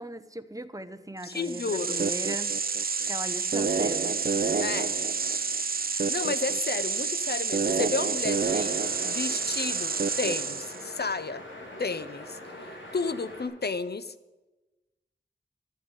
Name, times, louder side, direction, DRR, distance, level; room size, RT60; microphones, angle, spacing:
voice 1, 0.0-2.5 3.1-4.2, right 1 dB, 15° right, 10 dB, 0.9 m, -38 dB
voice 2, 1.2-2.0 4.6-4.9 5.9-8.7 9.0-11.4 11.8-12.4 12.9-14.1, left 4 dB, 55° left, 14 dB, 0.7 m, -32 dB
sound 1, 1.3-10.9, right 5 dB, 50° right, 0.6 m, -28 dB
sound 2, 8.3-13.4, left 1 dB, 85° left, 3.2 m, -43 dB
12.5 x 7.5 x 9.6 m, 1.1 s
wide cardioid pair, 50°, 19 cm